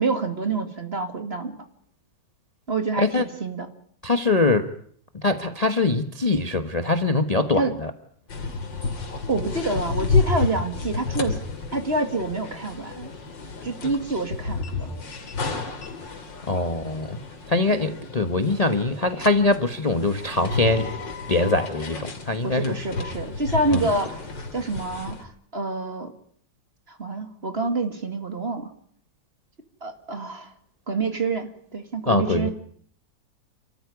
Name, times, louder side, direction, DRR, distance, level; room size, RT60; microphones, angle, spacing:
voice 1, 0.0-1.7 2.7-3.7 7.5-7.7 9.3-11.4 11.7-13.1 13.6-14.9 22.4-24.2 24.5-26.1 26.9-28.7 29.8-30.5 30.9-32.5, right 3 dB, 35° right, 7 dB, 2.4 m, -27 dB
voice 2, 4.0-4.7 5.1-7.6 16.5-17.2 17.5-20.9 21.3-22.8 23.7-23.8 32.1-32.5, left 2 dB, 25° left, 8 dB, 1.1 m, -22 dB
sound 1, 8.3-25.2, left 4 dB, 90° left, 3.4 m, -31 dB
29.5 x 13.5 x 9.7 m, 0.64 s
omnidirectional pair, 1.9 m